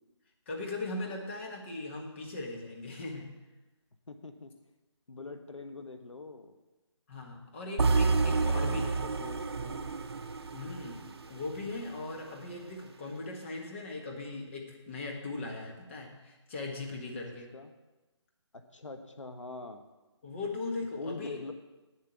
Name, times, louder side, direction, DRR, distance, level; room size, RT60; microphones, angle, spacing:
voice 1, 0.5-3.3 7.1-8.8 10.5-17.5 20.2-21.4, left 2 dB, 25° left, 0 dB, 1.6 m, -39 dB
voice 2, 4.1-4.5 5.1-6.5 8.1-10.0 17.5-17.7 18.5-19.8 21.0-21.5, left 3 dB, 90° left, 7 dB, 1.3 m, -43 dB
sound 1, 7.8-11.9, right 4 dB, 55° right, 0.8 m, -30 dB
9.3 x 7.6 x 8.2 m, 1.1 s
figure-of-eight pair, 165°, 16 cm